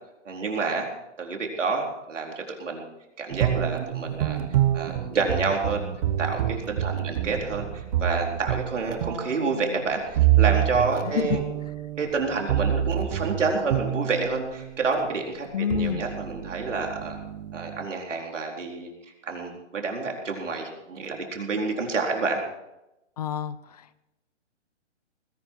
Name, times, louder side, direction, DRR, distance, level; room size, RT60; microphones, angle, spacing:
voice 1, 0.3-0.9 1.2-2.8 3.2-4.4 4.7-5.8 6.2-11.4 12.0-15.5 15.7-17.2 17.5-18.9 19.3-22.4, right 4 dB, 80° right, 1 dB, 4.3 m, -28 dB
sound 1, 3.3-14.8 15.4-17.8, right 12 dB, 35° right, 0.9 m, -27 dB
voice 2, 11.0-11.4 15.5-16.0 23.2-24.0, left 8 dB, 35° left, 16 dB, 0.6 m, -28 dB
20.0 x 11.5 x 4.7 m, 0.91 s
hypercardioid pair, 150°, 36 cm